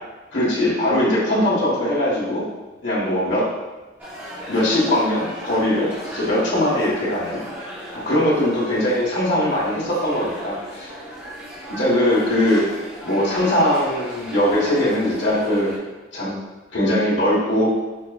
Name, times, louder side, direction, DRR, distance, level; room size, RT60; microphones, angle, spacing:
voice 1, 0.3-2.4 2.8-3.5 4.5-7.4 7.9-10.9 11.7-12.6 13.0-15.7 16.1-16.4 16.7-17.7, left 1 dB, 70° left, -7 dB, 1.3 m, -20 dB
sound 1, 4.0-15.8, equal, 10° right, 0.8 m, -36 dB
5.8 x 2.6 x 2.3 m, 1.2 s
head